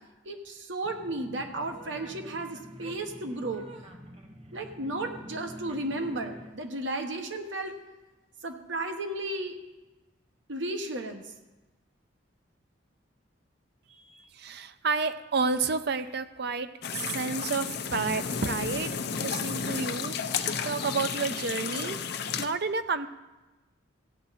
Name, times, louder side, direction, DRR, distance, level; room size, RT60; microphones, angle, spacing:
voice 1, 0.2-3.6 4.5-7.8 8.4-9.6 10.5-11.3 14.0-14.2, right 2 dB, 75° right, 5 dB, 1.3 m, -34 dB
sound 1, 0.8-6.5, equal, 30° right, 1.2 m, -46 dB
voice 2, 14.3-20.2 20.6-22.0 22.4-23.1, right 4 dB, 60° right, 11 dB, 0.6 m, -30 dB
sound 2, 16.8-22.5, left 6 dB, 55° left, 0.7 m, -32 dB
16.0 x 8.7 x 4.2 m, 1.1 s
head